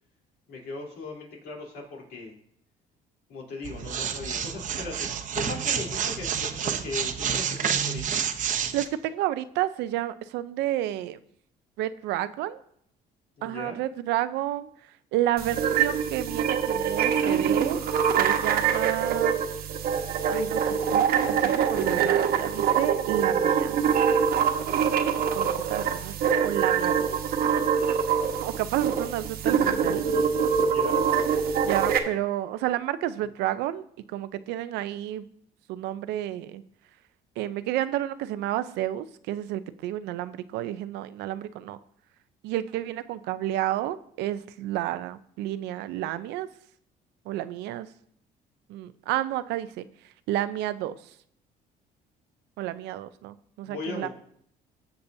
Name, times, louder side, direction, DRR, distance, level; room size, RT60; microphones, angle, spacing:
voice 1, 0.5-2.3 3.3-5.1 5.3-8.2 13.4-13.8 30.6-31.0 53.7-54.1, left 3 dB, 75° left, -2 dB, 3.3 m, -38 dB
sound 1, 3.6-8.8, right 8 dB, 50° right, 0.8 m, -29 dB
voice 2, 8.7-11.2 11.8-12.6 13.4-17.8 18.2-19.4 20.3-23.7 25.3-27.3 28.1-30.0 31.6-35.2 35.7-36.6 37.4-41.8 42.4-46.5 47.2-47.9 48.7-51.1 52.6-54.1, right 13 dB, 90° right, 13 dB, 0.5 m, -31 dB
sound 2, 15.4-32.0, right 7 dB, 65° right, 1.1 m, -24 dB
17.5 x 6.7 x 2.7 m, 0.68 s
cardioid pair, 110°, 17 cm